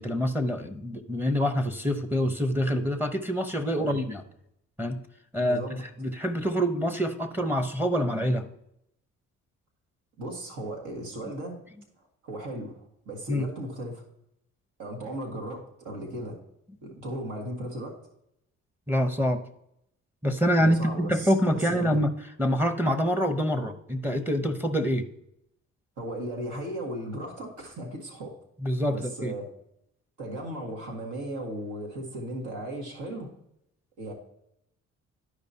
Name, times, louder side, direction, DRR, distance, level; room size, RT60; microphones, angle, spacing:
voice 1, 0.0-4.2 4.8-5.0 5.3-8.4 13.3-13.5 18.9-19.4 20.2-22.1 22.4-25.1 28.6-29.3, equal, 5° right, 6 dB, 0.7 m, -26 dB
voice 2, 5.4-5.8 10.2-11.6 12.0-12.8 13.1-14.0 14.8-16.4 16.8-18.0 20.6-22.0 26.0-28.4 28.9-29.5 30.2-33.3 34.0-34.1, right 1 dB, 80° right, 0 dB, 1.8 m, -36 dB
12.0 x 5.0 x 2.8 m, 0.78 s
cardioid pair, 90°, 30 cm